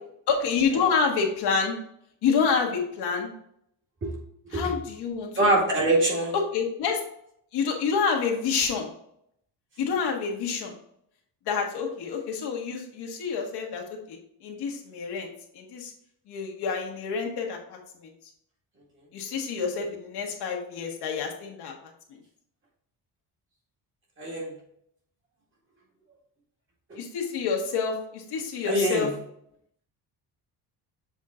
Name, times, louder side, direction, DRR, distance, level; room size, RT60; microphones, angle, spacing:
voice 1, 0.3-1.8 2.2-3.3 4.5-5.3 6.5-7.0 7.5-8.9 9.8-10.7 11.5-15.9 16.3-18.1 19.1-22.2 27.0-29.1, left 5 dB, 70° left, 1 dB, 1.4 m, -28 dB
voice 2, 5.4-6.3 24.2-24.5 26.9-27.0 28.6-29.1, right 1 dB, 30° right, -3 dB, 2.1 m, -24 dB
7.1 x 3.7 x 3.7 m, 0.71 s
cardioid pair, 155°, 42 cm